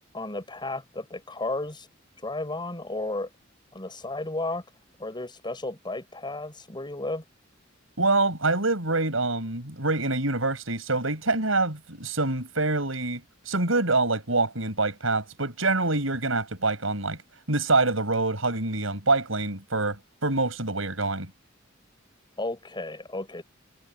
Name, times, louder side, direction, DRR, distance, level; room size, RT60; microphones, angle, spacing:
voice 1, 0.1-1.9 2.2-3.3 3.7-4.6 5.0-7.2 22.4-23.4, left 2 dB, 25° left, 5.9 m, -33 dB
voice 2, 8.0-17.2 17.5-21.3, right 3 dB, 80° right, 6.8 m, -26 dB
head